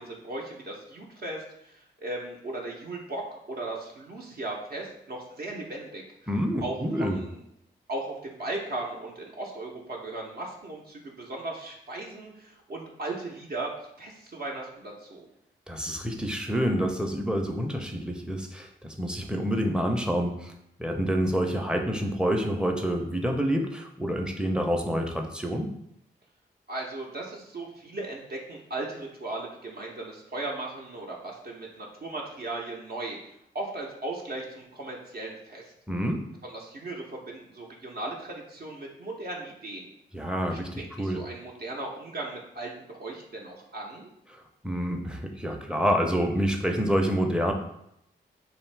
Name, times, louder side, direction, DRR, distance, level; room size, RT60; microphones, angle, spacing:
voice 1, 0.0-6.0 6.6-7.4 7.9-13.7 14.0-15.2 26.7-33.2 33.5-35.7 36.4-39.9 40.5-44.1, right 2 dB, 50° right, -1 dB, 0.7 m, -37 dB
voice 2, 6.3-7.2 15.7-20.5 20.8-25.7 35.9-36.2 40.1-41.2 44.3-47.5, equal, 5° right, 3 dB, 0.5 m, -28 dB
2.7 x 2.3 x 3.2 m, 0.77 s
supercardioid pair, 40°, 21 cm